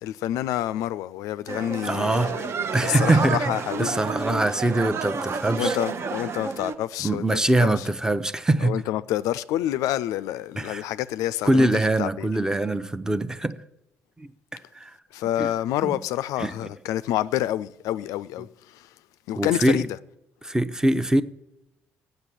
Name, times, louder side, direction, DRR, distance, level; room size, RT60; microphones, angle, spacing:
voice 1, 0.0-2.4 2.8-4.0 4.3-4.4 5.6-7.9 8.6-11.7 12.0-12.3 15.1-18.9 19.3-19.9, left 13 dB, 75° left, 0.3 m, -28 dB
sound 1, 1.5-6.7, right 5 dB, 50° right, 0.9 m, -30 dB
voice 2, 1.8-2.3 2.7-3.4 3.8-5.8 7.0-8.8 10.6-10.8 11.4-13.6 14.2-14.9 15.4-15.5 15.8-16.0 16.4-16.5 19.4-19.8 20.4-21.2, right 1 dB, 10° right, 0.7 m, -23 dB
8.2 x 6.6 x 7.7 m
supercardioid pair, 65°, 6 cm